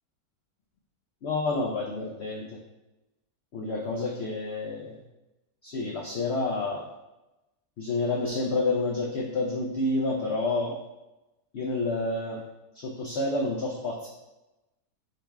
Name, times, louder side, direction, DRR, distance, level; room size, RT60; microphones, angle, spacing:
voice 1, 1.2-2.5 3.5-5.0 5.6-6.8 7.8-10.8 11.5-12.4 12.7-14.1, left 2 dB, 85° left, -1 dB, 0.5 m, -29 dB
5.1 x 2.9 x 3.3 m, 1.0 s
omnidirectional pair, 1.8 m